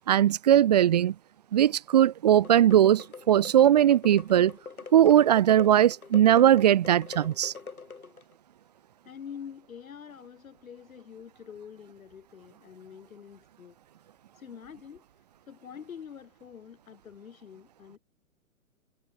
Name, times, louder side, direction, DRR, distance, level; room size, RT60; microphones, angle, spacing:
voice 1, 0.1-1.1 1.5-4.5 4.9-7.5, right 11 dB, 30° right, 0.4 m, -20 dB
sound 1, 2.3-8.3, left 5 dB, 90° left, 5.8 m, -44 dB
voice 2, 9.0-13.8 14.3-15.0 15.5-18.0, left 8 dB, 70° left, 6.1 m, -46 dB
hypercardioid pair, 130°, 42 cm